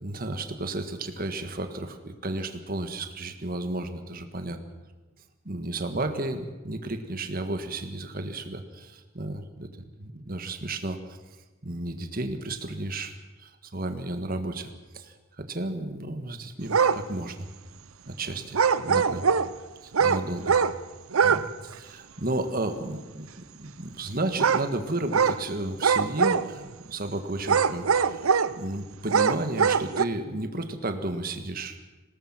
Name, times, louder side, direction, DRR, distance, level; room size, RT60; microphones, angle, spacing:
voice 1, 0.0-4.6 5.5-9.7 10.0-11.2 11.6-17.5 18.1-19.2 19.8-20.6 21.2-31.8, right 2 dB, 45° right, 7 dB, 1.7 m, -33 dB
sound 1, 16.7-17.0 18.5-19.5 19.9-20.8 21.1-21.5 21.7-21.8 24.4-24.7 25.1-25.4 25.8-26.7 27.4-28.5 29.1-30.0, right 6 dB, 90° right, 0.7 m, -22 dB
20.5 x 18.0 x 7.5 m, 1.2 s
head